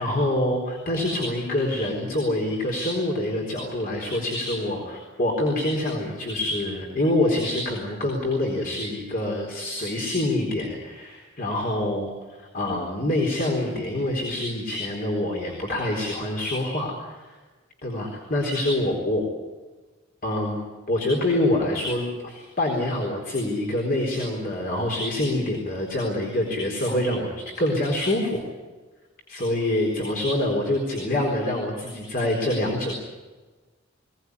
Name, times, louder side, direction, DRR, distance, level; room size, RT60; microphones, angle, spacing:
voice 1, 0.0-17.3 17.8-19.2 20.2-20.6 20.9-28.4 29.3-32.9, left 1 dB, 50° left, 0 dB, 4.1 m, -26 dB
21.5 x 19.0 x 9.7 m, 1.3 s
head